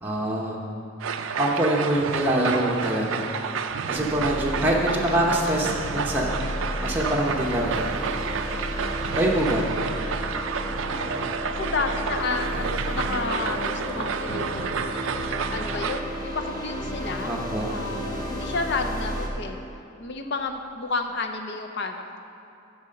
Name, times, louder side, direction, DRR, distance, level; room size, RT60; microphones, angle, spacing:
voice 1, 0.0-0.5 1.4-3.2 3.9-6.4 6.8-7.9 9.1-9.6 17.2-17.7, right 1 dB, 10° right, -4 dB, 0.7 m, -24 dB
sound 1, 1.0-16.0, right 6 dB, 65° right, 0.4 m, -30 dB
sound 2, 3.9-19.3, equal, 20° left, 0.9 m, -33 dB
voice 2, 11.6-14.8 15.5-17.3 17.7-19.6 20.0-22.2, left 3 dB, 55° left, 6 dB, 0.6 m, -31 dB
9.6 x 4.2 x 6.5 m, 2.8 s
head